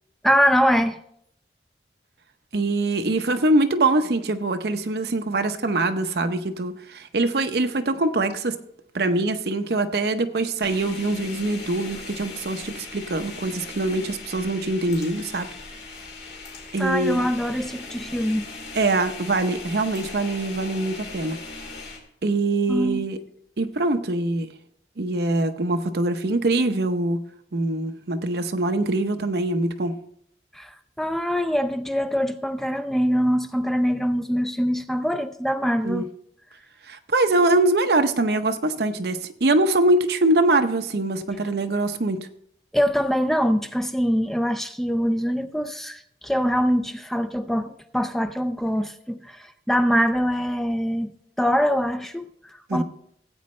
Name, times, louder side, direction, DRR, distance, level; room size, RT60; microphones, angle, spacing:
voice 1, 0.2-1.0 16.8-18.5 22.7-23.0 30.5-36.1 42.7-51.1 51.4-52.8, equal, ahead, 0.3 m, -23 dB
voice 2, 2.5-8.6 8.9-15.5 16.7-17.2 18.7-21.4 22.2-23.2 23.6-24.5 25.0-27.2 27.5-30.0 35.8-36.0 36.9-42.2 52.7-52.8, right 2 dB, 60° right, 0.7 m, -23 dB
sound 1, 10.6-22.0, left 3 dB, 60° left, 2.4 m, -39 dB
16.0 x 8.4 x 3.2 m
head